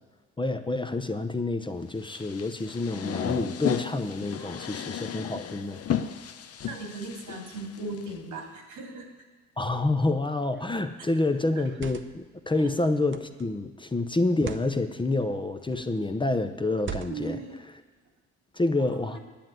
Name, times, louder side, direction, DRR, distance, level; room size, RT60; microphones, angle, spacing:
voice 1, 0.4-5.8 9.6-17.4 18.5-19.2, left 2 dB, 15° left, 7 dB, 0.8 m, -28 dB
sound 1, 2.0-8.1, left 9 dB, 50° left, 0.7 m, -34 dB
voice 2, 4.4-4.8 6.7-9.1 11.0-11.1 12.6-12.7 17.1-17.6 19.1-19.2, right 2 dB, 85° right, 2 dB, 2.6 m, -38 dB
sound 2, 10.4-10.7 11.5-12.3 13.1-13.4 14.3-14.7 15.6-16.0 16.8-17.4, right 7 dB, 40° right, 0.8 m, -40 dB
10.0 x 7.4 x 9.3 m, 1.4 s
cardioid pair, 90°, 30 cm